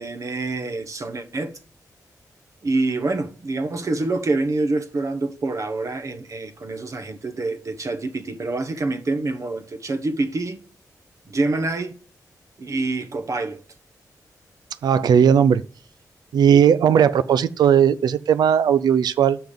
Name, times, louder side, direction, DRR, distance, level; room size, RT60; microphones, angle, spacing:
voice 1, 0.0-1.5 2.6-10.6 11.3-12.0 12.6-13.6, right 2 dB, 50° right, 1.1 m, -26 dB
voice 2, 14.8-15.6 16.3-19.4, right 8 dB, 90° right, 0.4 m, -17 dB
8.9 x 5.9 x 5.2 m
cardioid pair, 80°, 7 cm